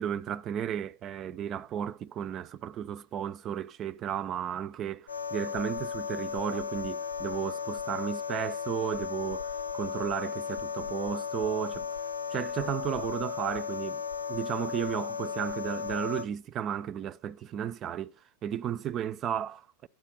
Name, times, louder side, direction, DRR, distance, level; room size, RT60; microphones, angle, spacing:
voice 1, 0.0-11.9 12.3-14.0 14.3-18.1 18.4-19.9, right 9 dB, 30° right, 0.5 m, -34 dB
sound 1, 5.1-16.2, left 6 dB, 80° left, 0.7 m, -35 dB
12.5 x 9.2 x 5.7 m
figure-of-eight pair, 90°, 0 cm